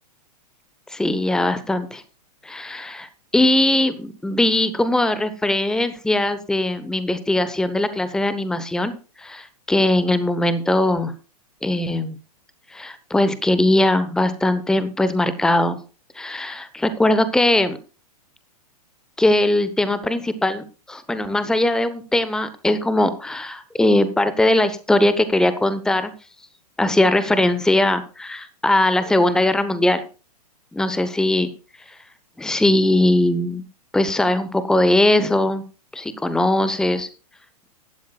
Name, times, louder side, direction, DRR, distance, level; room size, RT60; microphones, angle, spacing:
voice 1, 0.9-2.0 2.4-3.1 3.3-8.9 9.2-11.1 11.6-12.2 12.7-15.8 16.2-17.8 19.2-26.1 26.8-30.0 30.7-31.5 32.4-33.6 33.9-35.6 35.9-37.1, left 1 dB, 5° left, 13 dB, 0.9 m, -20 dB
17.0 x 12.0 x 2.3 m, 0.34 s
figure-of-eight pair, 105°, 20 cm